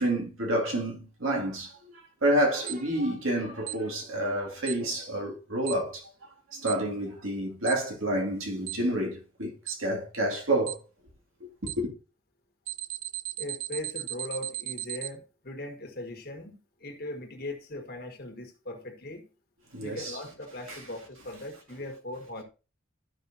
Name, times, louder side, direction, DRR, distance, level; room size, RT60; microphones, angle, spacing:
voice 1, 0.0-1.7 2.2-6.0 6.5-10.8 11.4-11.9 19.7-20.2 20.7-20.8, right 1 dB, 85° right, 2.4 m, -29 dB
Alarm, 2.7-2.8 3.7-3.8 4.7-4.8 5.7-5.8 6.7-6.8 7.7-7.8 8.7-8.8 9.7-9.8 10.7-10.8 11.7-11.8 12.7-15.1, right 17 dB, 65° right, 0.6 m, -35 dB
voice 2, 13.4-19.2 19.8-22.4, left 1 dB, 50° left, 1.6 m, -39 dB
13.0 x 5.5 x 2.7 m
head